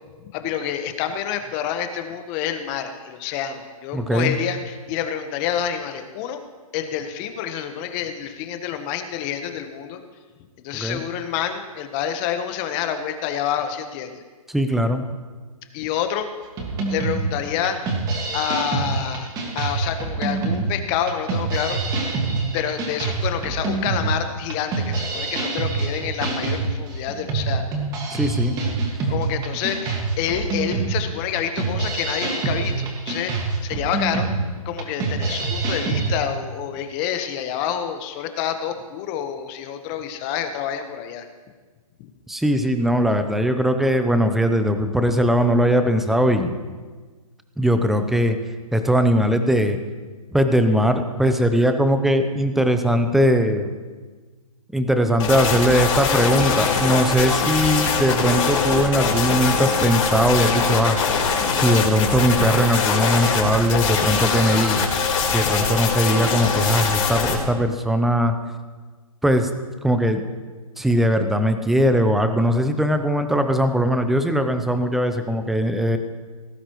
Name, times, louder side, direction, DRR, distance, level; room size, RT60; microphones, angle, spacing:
voice 1, 0.3-6.4 6.7-10.0 10.6-14.2 15.7-16.3 16.9-17.8 18.3-19.3 19.5-22.0 22.5-27.6 29.1-33.3 33.6-34.3 34.6-41.3 42.0-42.1, left 9 dB, 25° left, 7 dB, 1.1 m, -28 dB
voice 2, 3.9-4.4 10.7-11.0 14.5-15.0 28.1-28.6 42.3-46.6 47.6-48.4 48.7-49.8 50.3-53.7 54.7-61.0 61.5-64.9 65.3-68.4 69.2-69.5 69.8-70.2 70.8-76.0, equal, ahead, 8 dB, 0.6 m, -20 dB
sound 1, 16.6-36.1, right 3 dB, 20° right, 1.9 m, -26 dB
sound 2, 55.2-67.4, left 5 dB, 60° left, 4.0 m, -22 dB
17.5 x 14.0 x 3.1 m, 1.4 s
hypercardioid pair, 145°, 19 cm